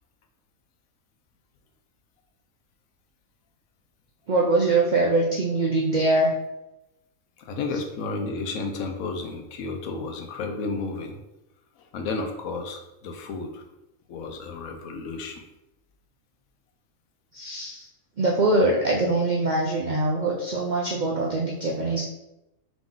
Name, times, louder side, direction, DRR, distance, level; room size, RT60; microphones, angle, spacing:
voice 1, 4.3-6.3 17.3-17.9 18.2-22.0, right 2 dB, 70° right, -1 dB, 0.4 m, -23 dB
voice 2, 7.4-11.2 11.9-13.6 14.1-15.4, left 3 dB, 80° left, 4 dB, 1.1 m, -32 dB
3.8 x 3.0 x 3.7 m, 0.92 s
omnidirectional pair, 1.4 m